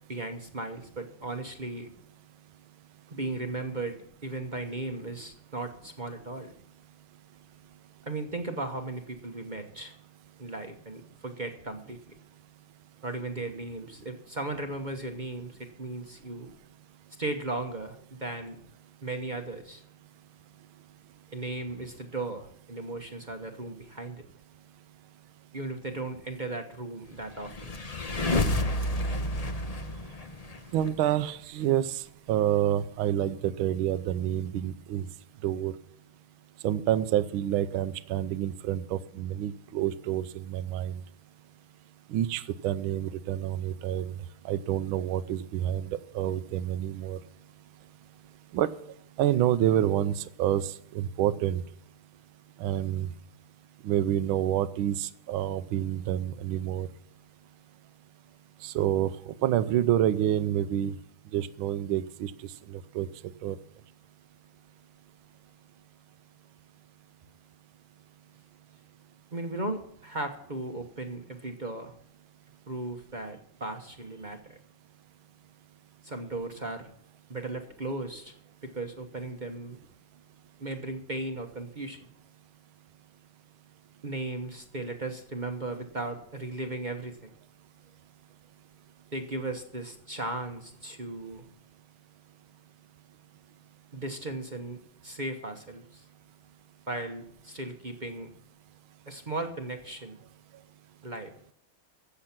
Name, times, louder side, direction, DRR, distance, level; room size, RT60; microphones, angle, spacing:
voice 1, 0.1-1.9 3.1-6.5 8.0-9.9 10.4-12.1 13.0-16.5 17.2-18.6 19.0-19.8 21.3-24.2 25.5-27.7 69.3-71.9 72.7-74.6 76.0-76.9 77.3-78.3 78.6-79.8 80.6-82.1 84.0-87.3 89.1-91.4 93.9-96.0 96.9-98.3 99.1-100.2 101.0-101.3, right 2 dB, 30° right, 5 dB, 0.9 m, -36 dB
sound 1, 27.3-30.9, left 1 dB, 80° left, 0.3 m, -29 dB
voice 2, 30.7-32.0 32.3-35.1 35.4-35.7 36.6-40.9 42.1-44.1 44.4-45.9 46.1-47.2 48.5-48.7 49.2-51.6 52.6-53.1 53.8-56.9 58.6-60.9 61.3-62.3 62.7-63.1 63.4-63.6, right 11 dB, 75° right, 15 dB, 1.5 m, -28 dB
15.0 x 7.1 x 5.9 m, 0.70 s
omnidirectional pair, 2.4 m